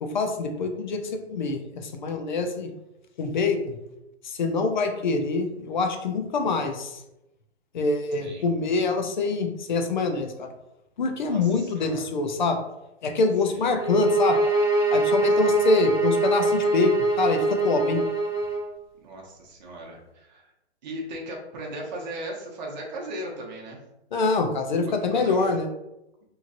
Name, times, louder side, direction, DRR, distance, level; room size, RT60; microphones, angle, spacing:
voice 1, 0.0-2.7 3.2-3.6 4.2-7.0 7.7-10.5 11.0-12.6 13.0-14.4 14.9-18.0 24.1-25.7, left 3 dB, 45° left, 5 dB, 0.4 m, -25 dB
voice 2, 11.1-12.1 13.4-13.7 15.4-15.6 19.0-20.5 20.8-23.8 24.8-25.5, right 1 dB, 40° right, -2 dB, 0.7 m, -37 dB
sound 1, 13.8-18.7, right 2 dB, 5° right, 1.2 m, -23 dB
3.0 x 2.6 x 2.5 m, 0.91 s
hypercardioid pair, 155°, 33 cm